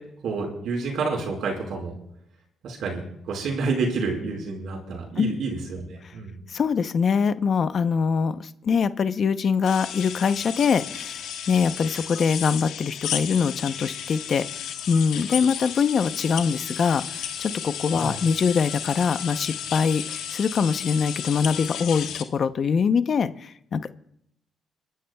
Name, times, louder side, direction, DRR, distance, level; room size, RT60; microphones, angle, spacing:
voice 1, 0.2-1.9 2.6-6.4 18.0-18.2, right 4 dB, 75° right, 1 dB, 4.8 m, -29 dB
voice 2, 6.5-14.4 14.9-23.9, left 6 dB, 50° left, 12 dB, 0.7 m, -23 dB
sound 1, 9.7-22.2, left 9 dB, 85° left, 1.4 m, -33 dB
30.0 x 12.0 x 2.3 m, 0.73 s
cardioid pair, 90°, 0 cm